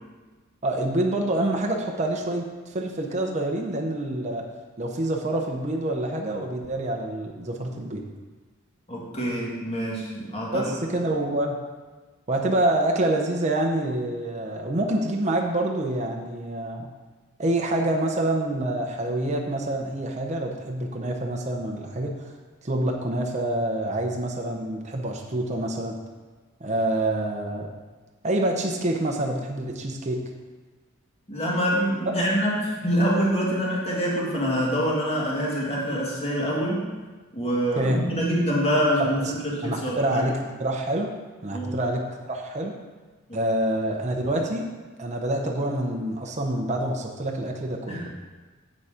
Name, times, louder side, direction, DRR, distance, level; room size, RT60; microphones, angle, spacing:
voice 1, 0.6-4.4 4.8-8.0 10.5-11.6 12.3-16.9 17.4-22.4 22.6-26.0 26.6-27.7 28.2-30.2 37.8-38.0 39.2-39.3 39.6-41.1 41.4-42.7 43.3-44.7 45.0-48.1, right 1 dB, 35° right, 1 dB, 0.8 m, -27 dB
voice 2, 8.9-10.7 31.3-36.9 37.3-40.2 41.5-41.8 43.3-43.4 47.9-48.1, equal, 30° left, -4 dB, 2.1 m, -25 dB
7.4 x 6.9 x 5.0 m, 1.3 s
head